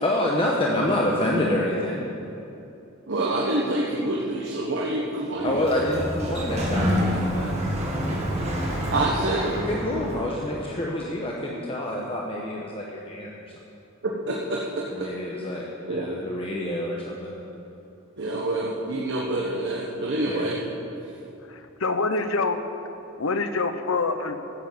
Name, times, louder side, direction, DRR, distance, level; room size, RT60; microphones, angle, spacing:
voice 1, 0.0-2.0 5.4-7.5 9.5-13.3 14.9-17.4 20.2-20.5, left 1 dB, 25° left, -2 dB, 1.2 m, -27 dB
voice 2, 3.1-5.6 8.9-9.6 14.0-15.1 15.8-16.2 18.2-20.6, right 2 dB, 60° right, -3 dB, 1.3 m, -27 dB
Sliding door, 5.4-10.5, equal, 30° right, 2.1 m, -28 dB
voice 3, 21.5-22.6 23.2-24.4, left 3 dB, 75° left, 8 dB, 0.9 m, -26 dB
13.5 x 8.0 x 7.7 m, 2.8 s
head